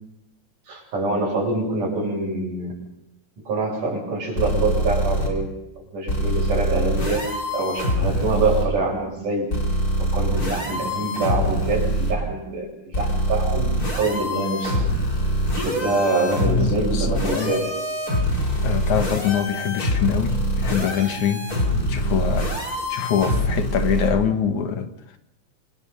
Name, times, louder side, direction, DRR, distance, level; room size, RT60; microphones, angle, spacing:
voice 1, 0.7-2.7 3.5-9.5 10.0-14.8 15.5-17.7, right 2 dB, 80° right, 9.2 m, -25 dB
sound 1, 4.4-5.3 6.1-8.6 9.5-12.1 12.9-24.1, equal, 25° left, 5.5 m, -24 dB
voice 2, 16.4-17.6 18.6-21.5 21.8-22.5 22.9-25.2, left 8 dB, 70° left, 3.1 m, -24 dB
27.5 x 26.5 x 5.8 m
omnidirectional pair, 3.6 m